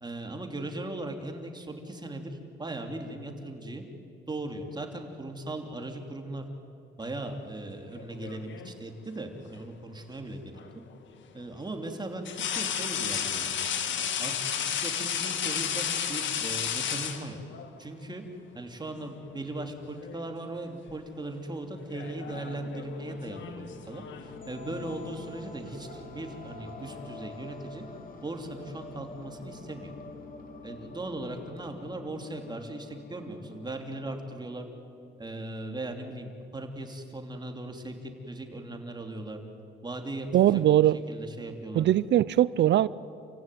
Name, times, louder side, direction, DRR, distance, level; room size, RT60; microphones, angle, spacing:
voice 1, 0.0-3.8 4.3-6.4 7.0-10.5 11.3-13.7 14.2-17.4 17.8-18.3 18.5-27.8 28.2-29.9 30.6-34.7 35.2-39.4 39.8-40.6 41.1-41.8, right 2 dB, 20° right, 4 dB, 3.0 m, -38 dB
sound 1, 7.9-8.8 10.6-10.7 12.2-17.7 18.9-19.1 19.5-20.3 20.5-20.9 21.8-24.4, left 8 dB, 70° left, 1.8 m, -33 dB
sound 2, 22.2-35.1, left 3 dB, 45° left, 3.2 m, -46 dB
voice 2, 40.3-41.0 41.8-42.9, right 12 dB, 65° right, 19 dB, 0.5 m, -21 dB
28.5 x 15.5 x 9.4 m, 2.5 s
cardioid pair, 90°, 20 cm